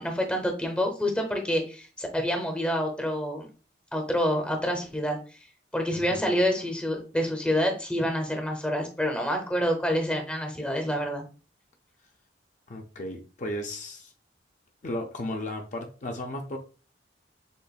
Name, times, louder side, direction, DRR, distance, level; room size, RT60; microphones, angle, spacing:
voice 1, 0.0-3.5 3.9-5.2 5.7-11.2, equal, 5° left, 3 dB, 0.7 m, -27 dB
voice 2, 12.7-14.1 14.8-16.6, left 1 dB, 40° left, 3 dB, 0.5 m, -34 dB
6.7 x 2.5 x 2.3 m, 0.37 s
head